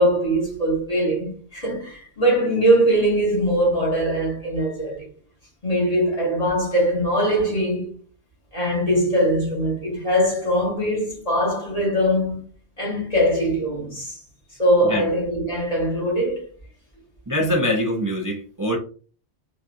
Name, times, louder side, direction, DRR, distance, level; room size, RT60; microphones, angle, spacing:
voice 1, 0.0-5.0 5.6-7.9 8.5-14.2 14.6-16.4, equal, 35° left, 1.7 m, -21 dB
voice 2, 17.3-18.8, equal, 25° right, 0.5 m, -23 dB
3.8 x 3.1 x 2.6 m
omnidirectional pair, 1.1 m